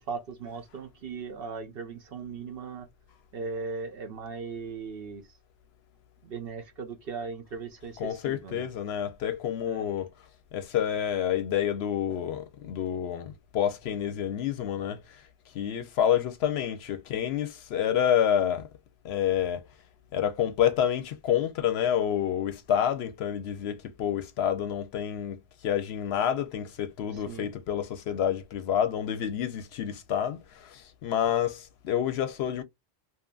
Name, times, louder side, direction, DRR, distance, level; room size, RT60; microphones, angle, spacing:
voice 1, 0.0-2.9 3.3-5.4 6.2-8.7 9.6-9.9 27.1-27.5, right 4 dB, 60° right, 0.9 m, -38 dB
voice 2, 8.0-10.1 10.5-15.2 15.5-18.7 19.0-19.6 20.1-32.6, left 9 dB, 70° left, 0.8 m, -28 dB
2.8 x 2.5 x 2.3 m
omnidirectional pair, 1.2 m